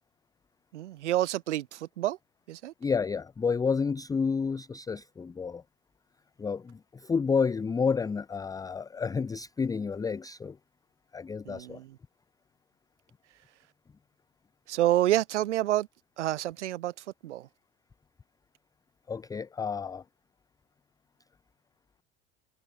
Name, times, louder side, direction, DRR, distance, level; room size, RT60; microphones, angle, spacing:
voice 1, 0.7-2.2 2.5-2.7 11.4-12.0 14.7-15.9 16.2-16.9 17.2-17.5, right 14 dB, 75° right, 0.8 m, -28 dB
voice 2, 2.8-5.6 6.4-10.6 11.1-11.8 19.1-20.0, left 5 dB, 10° left, 0.4 m, -30 dB
figure-of-eight pair, 70°, 35 cm